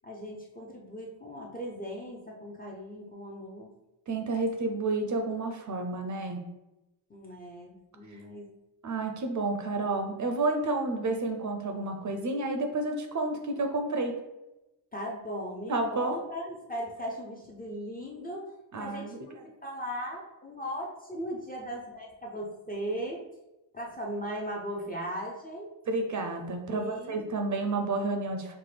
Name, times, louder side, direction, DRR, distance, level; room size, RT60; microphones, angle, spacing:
voice 1, 0.0-3.7 7.1-8.5 14.9-18.5 18.8-19.3 19.6-23.2 23.7-25.8 26.7-27.2, equal, 20° left, -1 dB, 0.4 m, -38 dB
voice 2, 4.1-6.4 8.1-8.2 8.8-14.1 15.7-16.2 18.7-19.4 25.9-28.6, right 2 dB, 45° right, 4 dB, 0.4 m, -30 dB
5.7 x 2.1 x 3.2 m, 0.98 s
wide cardioid pair, 155°, 46 cm